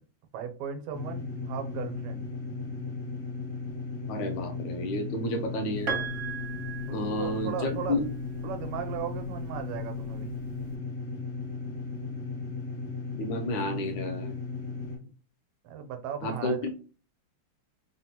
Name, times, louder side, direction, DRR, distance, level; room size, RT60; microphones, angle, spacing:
voice 1, 0.3-2.2 6.9-8.0 8.4-10.3 15.0-15.1 15.6-16.7, right 8 dB, 90° right, 7 dB, 1.5 m, -37 dB
sound 1, 0.9-15.0, left 3 dB, 50° left, 0.8 m, -36 dB
voice 2, 4.1-5.9 6.9-8.1 13.1-14.4 16.2-16.8, left 1 dB, 75° left, 6 dB, 1.1 m, -31 dB
Piano, 5.9-7.9 9.1-9.2, right 5 dB, 70° right, 0.7 m, -36 dB
3.5 x 2.1 x 2.8 m, 0.38 s
omnidirectional pair, 2.4 m